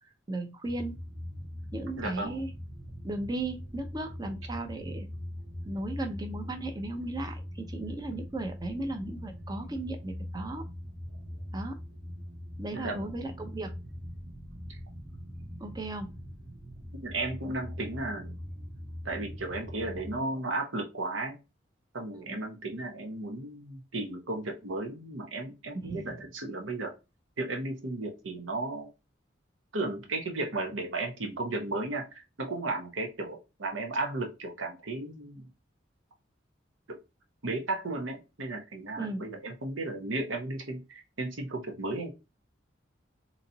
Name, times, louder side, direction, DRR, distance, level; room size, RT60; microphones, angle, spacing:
voice 1, 0.3-1.0 1.7-2.5 3.0-5.1 5.6-7.4 7.7-10.6 11.5-11.8 12.6-13.7 15.6-16.1 22.1-22.4 25.7-26.2 39.0-39.3, right 2 dB, 20° right, 5 dB, 0.6 m, -36 dB
sound 1, 0.6-20.2, equal, 70° right, 1.3 m, -42 dB
voice 2, 2.0-2.4 12.7-13.1 14.7-14.8 17.0-18.4 19.0-21.3 21.9-26.9 27.4-28.9 29.7-32.0 32.4-35.5 37.4-42.1, right 2 dB, 90° right, 4 dB, 1.0 m, -34 dB
4.1 x 2.9 x 2.7 m, 0.27 s
head